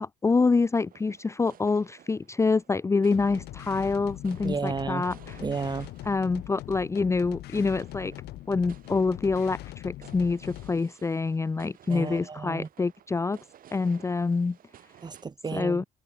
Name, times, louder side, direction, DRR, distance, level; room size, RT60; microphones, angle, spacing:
voice 1, 0.0-5.4 6.1-8.1 8.5-13.4 13.7-14.6 15.5-15.8, left 4 dB, 15° left, 0.6 m, -26 dB
sound 1, 0.7-15.2, right 10 dB, 55° right, 7.3 m, -56 dB
sound 2, 3.1-10.8, left 16 dB, 75° left, 1.8 m, -42 dB
voice 2, 4.4-5.1 5.4-5.9 11.9-12.7 15.0-15.9, right 4 dB, 25° right, 1.9 m, -32 dB
cardioid pair, 110°, 17 cm